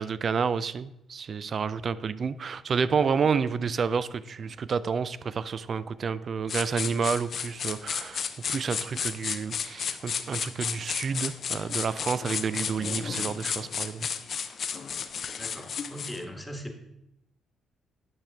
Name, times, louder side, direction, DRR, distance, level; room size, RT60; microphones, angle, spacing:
voice 1, 0.0-8.2 8.5-14.1, right 5 dB, 45° right, 16 dB, 0.3 m, -29 dB
sound 1, 6.5-16.2, left 7 dB, 55° left, 0.5 m, -33 dB
voice 2, 15.4-16.8, equal, 5° left, 4 dB, 1.2 m, -39 dB
9.3 x 5.8 x 3.4 m, 0.84 s
cardioid pair, 90°, 0 cm